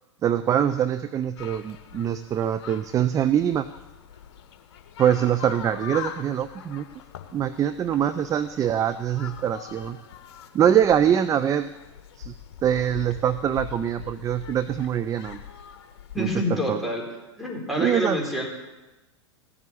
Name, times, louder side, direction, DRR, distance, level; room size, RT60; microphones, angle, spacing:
voice 1, 0.2-3.7 5.0-6.8 7.3-10.0 10.5-11.7 12.2-12.3 12.6-15.4 16.2-16.3 16.7-16.8 17.8-18.2, right 9 dB, 20° right, 12 dB, 0.5 m, -23 dB
sound 1, 1.4-16.5, left 9 dB, 55° left, 1.3 m, -42 dB
voice 2, 16.1-17.0 17.4-18.5, equal, ahead, -3 dB, 4.3 m, -27 dB
15.0 x 7.5 x 8.4 m, 1.0 s
figure-of-eight pair, 100°, 15 cm